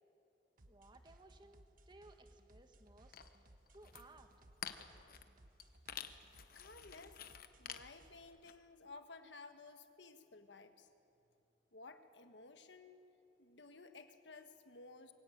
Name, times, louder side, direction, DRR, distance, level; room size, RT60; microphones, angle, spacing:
voice 1, 0.6-3.2 3.7-4.3, right 2 dB, 25° right, 7 dB, 1.4 m, -61 dB
sound 1, 0.6-8.2, right 1 dB, 50° right, 1.4 m, -64 dB
sound 2, 3.1-3.4 3.7-4.0 4.5-5.3 5.6-5.7 5.9-8.5, left 8 dB, 55° left, 1.0 m, -49 dB
voice 2, 6.5-7.2 7.6-10.9 11.7-13.0 13.4-15.1, left 3 dB, 80° left, 8 dB, 1.4 m, -56 dB
22.5 x 16.5 x 8.9 m, 2.7 s
head